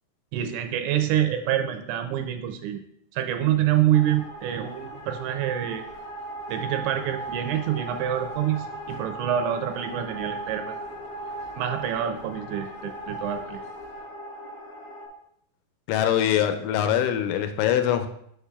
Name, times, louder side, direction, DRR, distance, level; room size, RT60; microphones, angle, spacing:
voice 1, 0.3-2.8 3.1-5.8 6.5-10.8 11.6-13.6, right 11 dB, 85° right, 7 dB, 2.7 m, -26 dB
sound 1, 3.9-15.1, right 1 dB, 60° left, 2.5 m, -38 dB
voice 2, 15.9-18.1, left 10 dB, 85° left, 7 dB, 2.8 m, -23 dB
7.1 x 6.7 x 2.3 m, 0.72 s
omnidirectional pair, 5.4 m